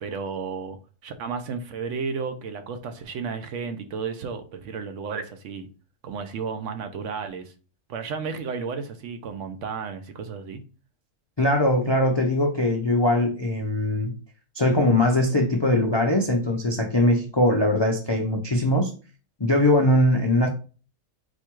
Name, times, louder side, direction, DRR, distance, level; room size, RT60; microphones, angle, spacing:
voice 1, 0.0-5.7 6.0-7.5 7.9-10.6, right 5 dB, 70° right, 0.9 m, -33 dB
voice 2, 11.4-14.1 14.6-18.9 19.4-20.5, left 1 dB, 40° left, 0.4 m, -21 dB
4.4 x 2.3 x 4.5 m
omnidirectional pair, 1.4 m